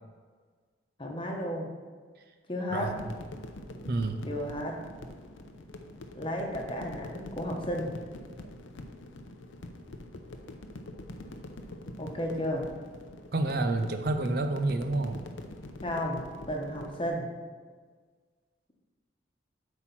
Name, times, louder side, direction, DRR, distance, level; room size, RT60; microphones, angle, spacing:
voice 1, 1.0-1.7 2.5-2.9 4.3-4.8 6.1-7.9 12.0-12.7 13.8-13.9 15.8-17.3, equal, 25° left, 0 dB, 1.1 m, -33 dB
voice 2, 2.7-3.1 3.9-4.3 13.3-15.3, right 2 dB, 55° right, 7 dB, 0.5 m, -29 dB
sound 1, 2.8-17.2, left 1 dB, 85° left, 0.7 m, -44 dB
8.2 x 4.4 x 5.9 m, 1.6 s
head